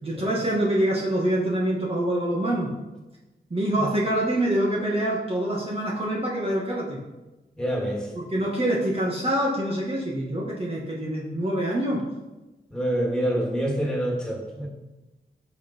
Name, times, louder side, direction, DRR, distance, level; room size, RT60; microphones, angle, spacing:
voice 1, 0.0-2.7 3.5-7.0 8.1-12.0, right 1 dB, 35° right, -4 dB, 2.2 m, -25 dB
voice 2, 7.6-8.1 12.7-14.7, equal, 5° left, -2 dB, 3.1 m, -26 dB
16.0 x 5.9 x 4.7 m, 1.1 s
wide cardioid pair, 90°, 18 cm